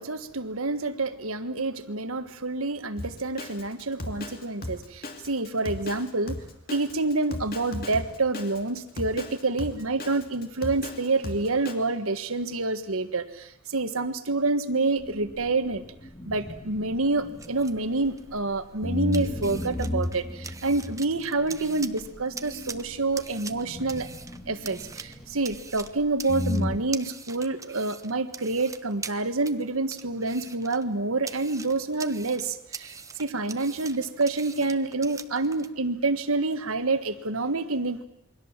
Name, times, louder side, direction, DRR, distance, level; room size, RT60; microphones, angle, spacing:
voice 1, 0.0-6.4 6.7-15.8 16.2-24.1 24.5-38.0, right 3 dB, 70° right, 10 dB, 1.5 m, -28 dB
Drum kit, 3.0-11.7, left 1 dB, 45° left, 2.6 m, -37 dB
sound 1, 15.0-18.4 18.8-26.0 26.3-26.8, left 1 dB, 20° left, 2.1 m, -35 dB
sound 2, 17.1-35.7, right 5 dB, 15° right, 0.9 m, -44 dB
28.0 x 23.0 x 7.4 m, 0.84 s
head